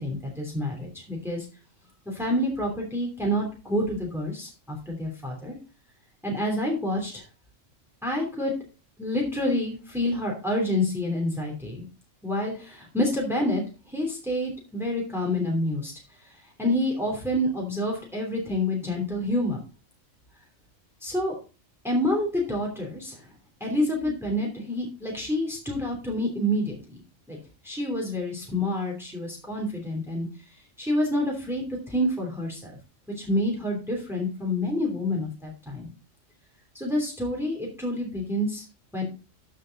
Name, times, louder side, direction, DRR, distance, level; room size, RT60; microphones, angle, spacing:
voice 1, 0.0-1.4 2.1-5.6 6.2-7.2 8.0-8.5 9.0-11.8 12.2-15.9 16.6-19.6 21.0-21.4 21.8-23.2 23.6-27.0 27.3-27.4 27.6-30.3 30.8-32.8 33.2-35.9 36.7-38.6 38.9-39.0, left 1 dB, ahead, -1 dB, 2.8 m, -28 dB
13.0 x 5.4 x 3.9 m, 0.34 s
omnidirectional pair, 1.4 m